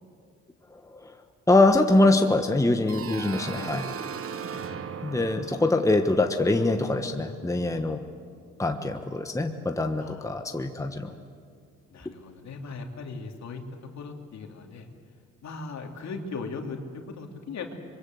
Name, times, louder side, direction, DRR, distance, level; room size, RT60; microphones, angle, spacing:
voice 1, 1.5-3.8 5.0-8.0 8.6-11.1, left 2 dB, 10° left, 5 dB, 1.2 m, -23 dB
sound 1, 2.9-7.5, right 7 dB, 45° right, 1.2 m, -38 dB
voice 2, 4.6-5.1 10.0-10.3 11.9-13.6 14.0-14.9 15.4-16.8 17.1-17.7, left 4 dB, 65° left, 3 dB, 3.0 m, -38 dB
24.5 x 22.5 x 7.9 m, 2.2 s
cardioid pair, 90°, 30 cm